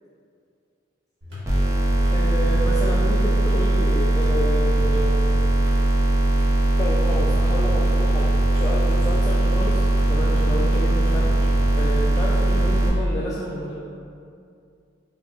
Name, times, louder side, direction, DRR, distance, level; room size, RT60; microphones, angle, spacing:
sound 1, 1.2-12.7, left 1 dB, 65° right, 1.5 m, -38 dB
sound 2, 1.5-12.9, right 1 dB, 15° right, 0.6 m, -20 dB
voice 1, 2.1-5.2 6.8-11.4 11.7-13.7, equal, 15° left, -6 dB, 0.3 m, -30 dB
5.9 x 2.5 x 2.4 m, 2.5 s
head